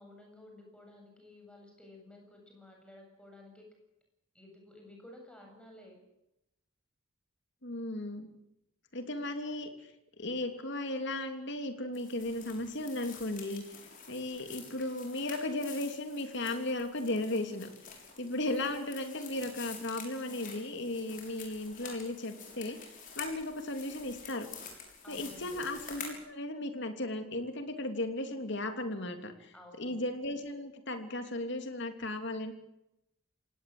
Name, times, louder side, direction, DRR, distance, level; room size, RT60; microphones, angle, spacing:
voice 1, 0.0-3.7 4.3-6.0 25.0-25.7 29.5-30.0, left 1 dB, 5° left, 1 dB, 8.0 m, -53 dB
voice 2, 7.6-8.3 8.9-9.9 10.2-13.8 14.1-17.7 18.2-22.8 23.1-24.5 25.1-32.5, left 1 dB, 55° left, 7 dB, 3.1 m, -36 dB
sound 1, 11.9-26.1, left 6 dB, 40° left, 6.6 m, -48 dB
28.0 x 18.0 x 7.9 m, 0.86 s
head